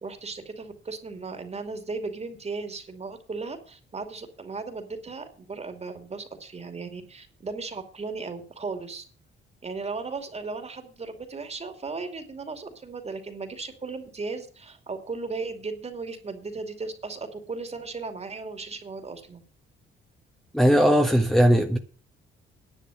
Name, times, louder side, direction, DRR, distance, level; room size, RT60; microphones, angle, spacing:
voice 1, 0.0-9.0 9.6-19.4, right 4 dB, 30° right, 2.6 m, -36 dB
voice 2, 20.5-21.8, equal, ahead, 1.5 m, -19 dB
10.5 x 6.7 x 9.2 m
cardioid pair, 90°, 20 cm